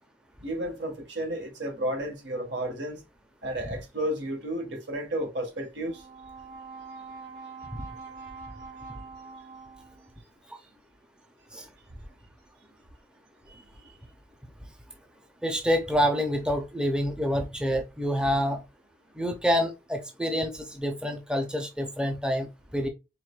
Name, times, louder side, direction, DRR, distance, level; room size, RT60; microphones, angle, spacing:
voice 1, 0.4-3.0 3.4-6.0 13.5-13.6, right 1 dB, 90° right, 1.7 m, -32 dB
Brass instrument, 5.8-10.2, right 4 dB, 55° right, 1.0 m, -44 dB
voice 2, 15.4-18.6 19.2-22.9, equal, 5° right, 0.6 m, -27 dB
4.7 x 3.5 x 2.4 m
head